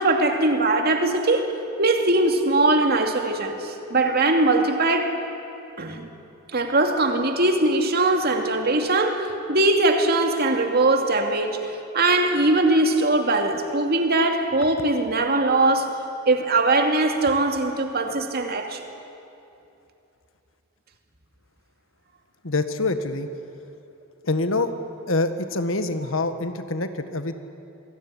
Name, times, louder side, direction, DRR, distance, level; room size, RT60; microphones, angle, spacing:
voice 1, 0.0-1.5 1.8-5.2 5.8-6.1 6.5-16.0 16.3-18.8, right 2 dB, 50° right, 2.5 m, -21 dB
voice 2, 22.4-23.3 24.2-24.7 25.1-27.4, left 2 dB, 75° left, 1.6 m, -25 dB
27.5 x 20.5 x 10.0 m
head